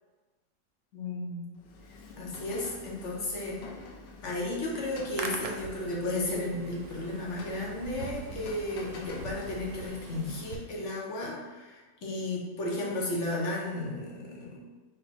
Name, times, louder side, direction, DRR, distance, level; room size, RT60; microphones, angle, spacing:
voice 1, 0.9-1.4 1.9-3.8 4.2-14.6, left 2 dB, 50° left, -3 dB, 1.0 m, -34 dB
Rain, 1.6-10.8, left 4 dB, 80° left, 1.3 m, -47 dB
Hands, 4.9-10.6, right 4 dB, 80° right, 1.3 m, -42 dB
4.5 x 2.2 x 4.1 m, 1.3 s
omnidirectional pair, 2.0 m